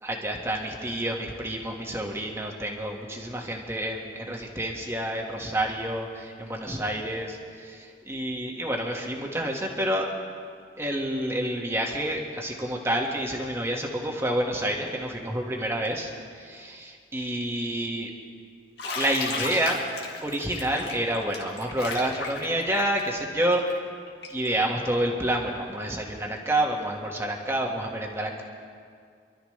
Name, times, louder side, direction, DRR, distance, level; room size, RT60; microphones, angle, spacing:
voice 1, 0.0-7.3 7.7-10.1 10.8-16.1 16.4-18.1 18.9-19.9 20.2-23.6 24.3-28.4, right 1 dB, 15° right, 0 dB, 1.7 m, -28 dB
Bathtub (filling or washing), 18.8-24.5, left 4 dB, 65° left, 2.1 m, -35 dB
27.0 x 13.0 x 3.3 m, 2.2 s
head